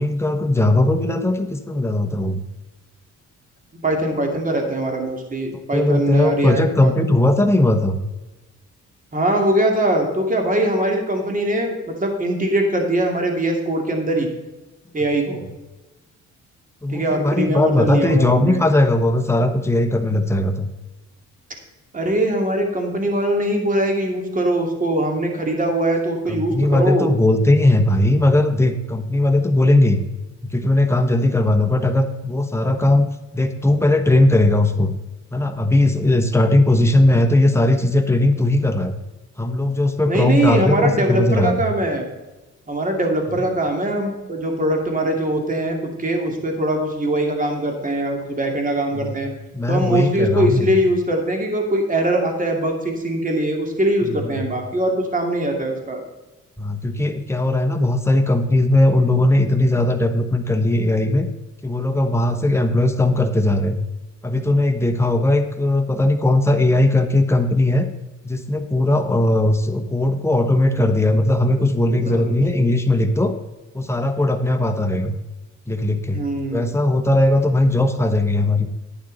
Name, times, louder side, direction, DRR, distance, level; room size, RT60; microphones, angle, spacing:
voice 1, 0.0-2.4 5.7-8.0 16.8-20.7 26.3-30.0 30.4-34.9 35.3-38.9 39.4-41.6 43.4-43.5 48.9-49.1 49.5-50.7 54.0-54.3 56.6-61.3 61.6-63.8 64.2-67.9 68.2-73.3 73.7-75.2 75.7-76.2 76.5-78.7, left 1 dB, 10° left, 6 dB, 1.2 m, -18 dB
voice 2, 3.8-6.9 9.1-11.7 12.0-14.3 14.9-15.4 16.9-18.6 21.9-27.1 40.1-42.1 42.7-49.3 49.7-56.0 71.6-72.7 76.1-76.7, right 1 dB, 25° right, 2 dB, 2.6 m, -22 dB
11.0 x 8.9 x 4.1 m, 1.1 s
cardioid pair, 90°, 30 cm